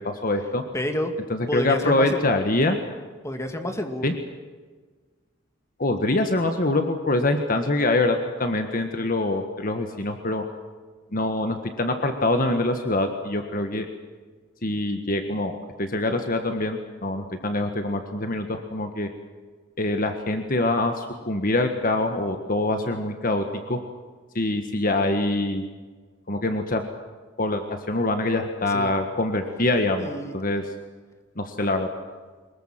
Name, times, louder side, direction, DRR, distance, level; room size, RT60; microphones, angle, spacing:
voice 1, 0.2-0.6 1.3-2.8 4.0-4.1 5.8-10.4 11.1-13.9 14.6-19.1 19.8-23.8 24.3-25.6 26.3-26.8 27.4-30.6 31.4-31.9, left 2 dB, 45° left, 6 dB, 1.6 m, -24 dB
voice 2, 0.7-1.1 1.5-2.2 3.2-4.2 28.7-28.9 30.0-30.3, left 1 dB, 15° left, 5 dB, 2.2 m, -29 dB
23.5 x 21.0 x 7.6 m, 1.4 s
head